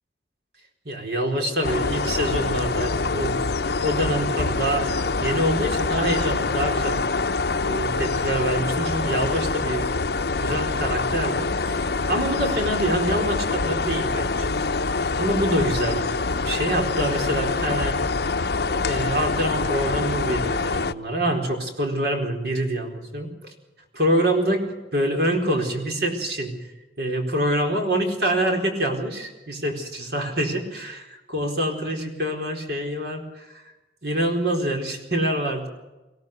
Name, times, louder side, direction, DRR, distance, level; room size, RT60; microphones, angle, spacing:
voice 1, 0.8-3.4 3.8-7.0 7.6-9.9 10.4-14.6 15.1-16.0 16.4-18.0 18.8-23.5 23.9-26.5 27.0-33.7 34.0-35.7, right 1 dB, 65° right, 2 dB, 4.3 m, -26 dB
sound 1, 1.6-20.9, left 3 dB, 65° left, 0.8 m, -25 dB
24.0 x 17.0 x 6.7 m, 1.1 s
head